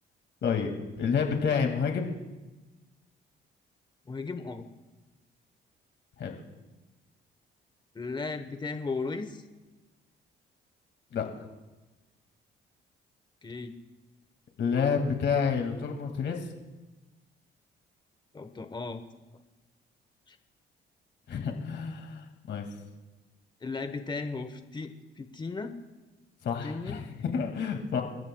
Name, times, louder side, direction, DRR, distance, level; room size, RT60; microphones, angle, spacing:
voice 1, 0.4-2.1 6.2-6.4 11.1-11.3 14.6-16.5 21.3-22.6 26.4-28.0, left 6 dB, 65° left, 3 dB, 2.2 m, -29 dB
voice 2, 4.1-4.7 7.9-9.4 13.4-13.7 18.3-19.0 20.3-20.4 23.6-25.7 26.6-27.0, left 4 dB, 20° left, 8 dB, 1.1 m, -36 dB
29.5 x 13.5 x 2.3 m, 1.2 s
cardioid pair, 90°, 20 cm